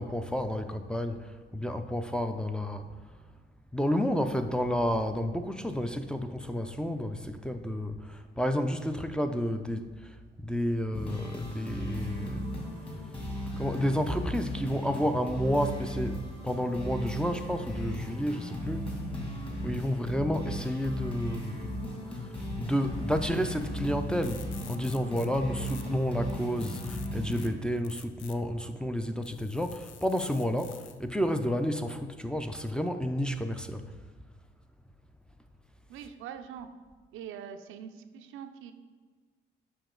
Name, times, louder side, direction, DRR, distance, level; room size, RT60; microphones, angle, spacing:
voice 1, 0.0-2.9 3.7-12.4 13.6-19.0 19.6-21.7 22.1-33.9, equal, 5° left, 7 dB, 0.5 m, -31 dB
sound 1, 10.9-27.5, equal, 25° left, 2.2 m, -36 dB
sound 2, 23.9-24.0 24.2-25.3 25.6-25.8 26.3-27.5 27.8-28.3 29.2-31.0, left 9 dB, 80° left, 0.5 m, -49 dB
voice 2, 35.9-36.7 37.1-38.7, right 8 dB, 90° right, 7 dB, 0.5 m, -43 dB
6.9 x 5.6 x 3.8 m, 1.5 s
cardioid pair, 90°, 20 cm